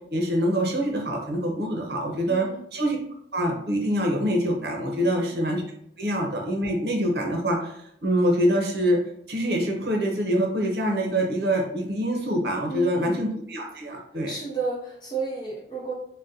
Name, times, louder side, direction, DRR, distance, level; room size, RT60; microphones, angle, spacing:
voice 1, 0.1-2.5 2.7-3.0 3.3-5.6 6.0-7.7 8.0-9.0 9.3-14.3, equal, 60° right, 1 dB, 0.7 m, -25 dB
voice 2, 2.3-2.6 5.0-5.3 12.7-13.2 13.8-14.0 14.3-15.9, right 3 dB, 25° left, -5 dB, 0.9 m, -32 dB
3.9 x 2.1 x 2.6 m, 0.71 s
head